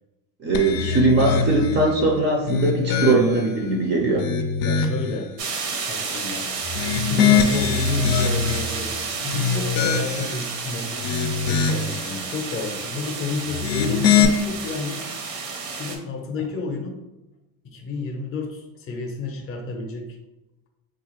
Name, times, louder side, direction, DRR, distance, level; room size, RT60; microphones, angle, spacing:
voice 1, 0.4-4.2, right 3 dB, 25° right, 0 dB, 0.4 m, -20 dB
sound 1, 0.5-1.8 2.4-3.5 4.0-5.1 6.6-8.7 9.2-10.4 10.9-12.0 13.5-14.3, left 6 dB, 70° left, 0.5 m, -22 dB
voice 2, 4.6-5.3 5.9-6.5 7.0-15.1 15.7-17.0 17.6-20.1, left 3 dB, 30° left, 3 dB, 0.6 m, -30 dB
sound 2, 5.4-16.0, right 4 dB, 90° right, 0.8 m, -31 dB
3.7 x 2.4 x 3.0 m, 0.97 s
supercardioid pair, 120°, 45 cm